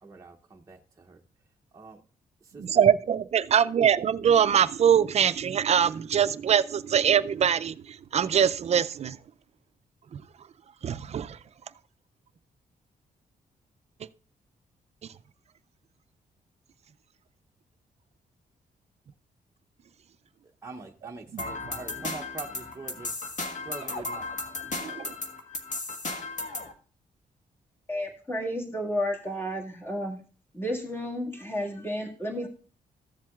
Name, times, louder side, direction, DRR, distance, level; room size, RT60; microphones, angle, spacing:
voice 1, 0.0-1.2 1.7-2.0 2.5-2.8 20.6-23.1 23.6-24.3, right 3 dB, 20° right, 0.7 m, -43 dB
voice 2, 2.6-9.2 10.1-10.2 10.8-11.4 21.3-21.4 24.8-25.1, right 8 dB, 45° right, 0.4 m, -23 dB
sound 1, 21.4-26.7, left 3 dB, 55° left, 1.4 m, -35 dB
voice 3, 27.9-30.2 30.5-32.5, equal, 15° left, 1.9 m, -32 dB
14.5 x 7.4 x 2.4 m
cardioid pair, 110°, 15 cm